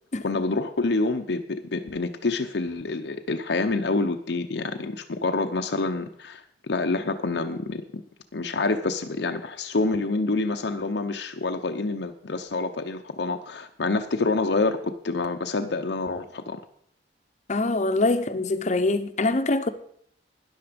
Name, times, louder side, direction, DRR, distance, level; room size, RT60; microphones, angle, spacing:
voice 1, 0.2-8.0 8.3-16.6, left 3 dB, 75° left, 0.7 m, -27 dB
voice 2, 17.5-19.7, left 2 dB, 40° left, 0.8 m, -24 dB
13.0 x 10.5 x 5.1 m
head